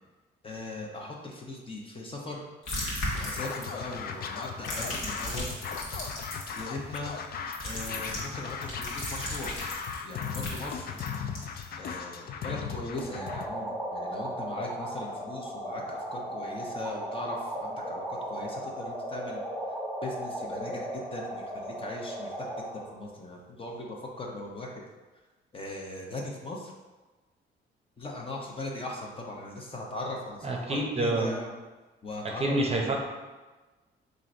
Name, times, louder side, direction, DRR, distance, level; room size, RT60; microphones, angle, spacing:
voice 1, 0.4-2.4 3.1-5.8 6.5-7.2 7.6-9.5 10.0-11.0 11.8-19.4 20.0-24.8 25.5-26.7 28.0-31.5 32.0-32.6 32.8-33.0, left 2 dB, 25° left, -1 dB, 0.8 m, -39 dB
sound 1, 2.6-3.9 4.4-6.6 7.5-11.6, left 1 dB, 75° left, 1.3 m, -36 dB
Scratching (performance technique), 3.1-13.5, left 6 dB, 50° left, 0.4 m, -37 dB
sound 2, 12.9-22.9, right 1 dB, ahead, 1.4 m, -36 dB
voice 2, 30.4-31.3 32.4-33.0, right 2 dB, 30° right, 0 dB, 0.7 m, -27 dB
3.7 x 2.6 x 4.3 m, 1.2 s
cardioid pair, 90°, 20 cm